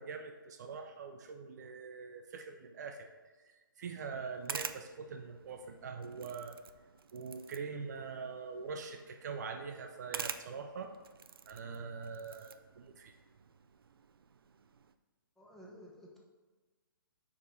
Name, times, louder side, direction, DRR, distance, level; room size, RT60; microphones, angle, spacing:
voice 1, 0.0-3.1 3.4-6.6 7.1-10.9 11.5-13.1, right 5 dB, 50° right, 5 dB, 0.7 m, -43 dB
sound 1, 4.0-14.9, right 6 dB, 85° right, 0.4 m, -48 dB
voice 2, 15.4-16.2, equal, 5° left, -4 dB, 0.9 m, -53 dB
4.8 x 4.7 x 5.5 m, 1.3 s
hypercardioid pair, 150°, 12 cm